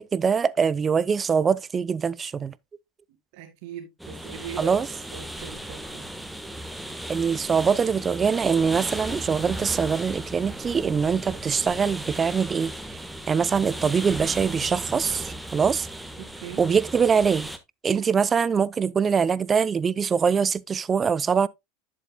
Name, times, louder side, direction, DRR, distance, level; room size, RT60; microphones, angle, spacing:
voice 1, 0.0-2.5 4.6-4.9 7.1-15.9 16.6-17.5 17.8-21.5, right 6 dB, 25° right, 0.5 m, -23 dB
voice 2, 3.3-6.0 16.2-16.6 17.9-18.1, right 10 dB, 65° right, 2.2 m, -40 dB
sound 1, 4.0-17.6, right 1 dB, 5° right, 1.3 m, -36 dB
11.0 x 7.5 x 2.2 m
hypercardioid pair, 100°, 0 cm